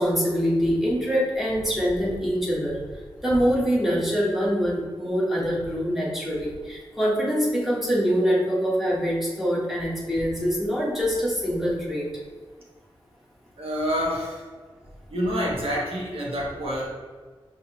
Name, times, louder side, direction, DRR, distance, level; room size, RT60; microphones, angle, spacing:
voice 1, 0.0-2.8 3.2-12.0, equal, 5° right, -5 dB, 1.1 m, -24 dB
voice 2, 13.6-14.5 15.1-16.9, equal, 80° right, -3 dB, 1.1 m, -27 dB
5.6 x 2.7 x 2.9 m, 1.5 s
wide cardioid pair, 120°, 10 cm